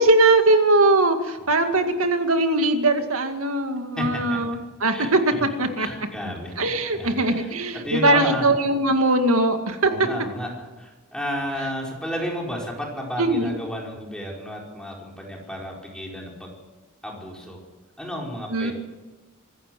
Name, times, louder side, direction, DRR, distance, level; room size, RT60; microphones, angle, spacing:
voice 1, 0.0-5.9 6.6-9.9 13.2-13.6 18.5-18.7, right 2 dB, 85° right, 6 dB, 2.2 m, -20 dB
voice 2, 4.0-4.4 4.9-5.4 5.8-7.5 7.8-8.5 9.8-16.5 17.0-17.6 18.0-18.7, equal, 5° left, -2 dB, 4.7 m, -32 dB
24.5 x 14.5 x 7.7 m, 1.2 s
head